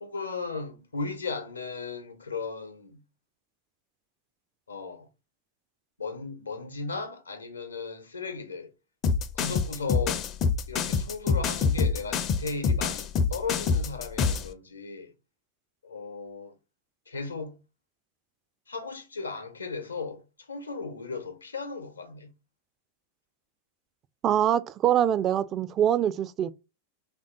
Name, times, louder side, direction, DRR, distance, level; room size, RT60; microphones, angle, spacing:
voice 1, 0.0-3.0 4.7-5.1 6.0-8.7 9.3-10.2 10.7-15.1 15.8-16.5 17.1-17.6 18.7-20.2 20.5-22.3, left 4 dB, 75° left, 0.8 m, -36 dB
sound 1, 9.0-14.5, left 5 dB, 30° left, 0.4 m, -26 dB
voice 2, 24.2-26.5, right 10 dB, 30° right, 0.3 m, -24 dB
3.4 x 2.6 x 3.7 m
figure-of-eight pair, 90°, 0 cm